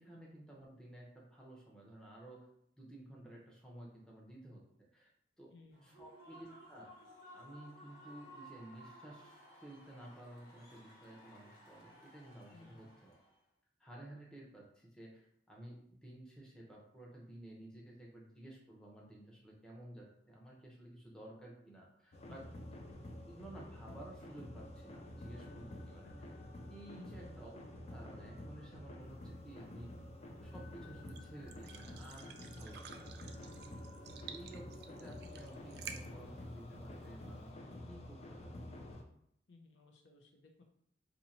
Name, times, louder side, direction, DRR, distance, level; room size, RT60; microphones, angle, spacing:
voice 1, 0.0-2.5 2.8-4.6 4.9-5.1 5.4-5.5 5.8-6.9 7.3-13.1 13.8-22.5 23.3-26.3 26.7-27.6 27.9-29.9 30.4-33.4 33.8-33.9 34.3-38.7, right 1 dB, 5° left, -4 dB, 0.7 m, -54 dB
voice 2, 5.5-5.9 12.5-12.9 22.3-22.6 26.9-27.4 32.9-33.1 39.5-40.6, left 3 dB, 80° left, 2 dB, 0.6 m, -60 dB
Human voice / Cheering / Applause, 5.7-13.4, equal, 55° left, 1.1 m, -58 dB
sound 1, 22.1-39.0, left 1 dB, 35° left, 0.4 m, -49 dB
sound 2, 29.0-37.5, right 7 dB, 60° right, 0.3 m, -54 dB
2.7 x 2.7 x 4.2 m, 0.70 s
head